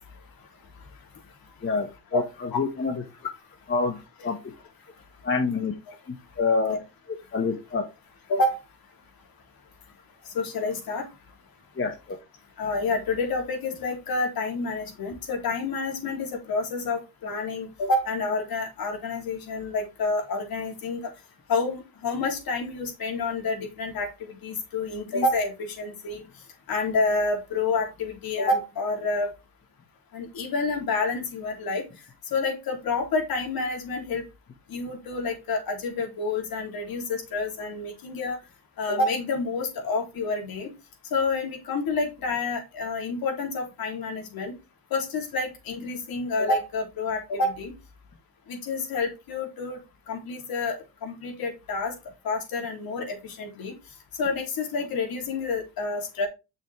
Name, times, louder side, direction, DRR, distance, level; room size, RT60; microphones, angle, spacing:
voice 1, 1.6-3.0 3.7-4.4 5.2-5.7 6.4-6.8 7.1-7.8 11.8-12.2, left 4 dB, 30° left, 3 dB, 1.7 m, -27 dB
voice 2, 8.3-8.6 10.3-11.1 12.6-21.0 21.5-26.2 26.7-29.3 30.1-31.8 32.3-34.2 34.7-38.4 38.8-40.7 41.1-44.6 44.9-47.7 48.5-49.8 50.1-51.9 52.2-53.7 54.2-56.3, left 3 dB, 65° left, 1 dB, 3.7 m, -28 dB
7.5 x 6.2 x 3.5 m, 0.27 s
supercardioid pair, 75°, 39 cm